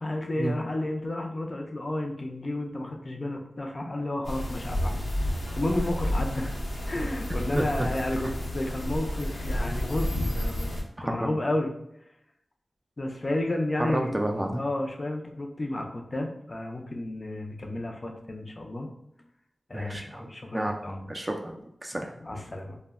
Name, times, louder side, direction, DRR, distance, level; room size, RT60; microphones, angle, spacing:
voice 1, 0.0-5.1 5.4-6.5 6.9-10.7 11.0-11.7 13.0-14.1 14.6-18.9 19.7-21.0 21.9-22.8, left 1 dB, 40° left, 2 dB, 0.4 m, -32 dB
sound 1, 4.2-10.8, left 1 dB, 85° left, 0.7 m, -30 dB
voice 2, 7.5-7.9 11.0-11.3 13.9-14.6 19.7-20.8 21.1-22.1, right 1 dB, 25° right, 2 dB, 0.3 m, -31 dB
2.1 x 2.1 x 3.4 m, 0.78 s
wide cardioid pair, 75°, 0 cm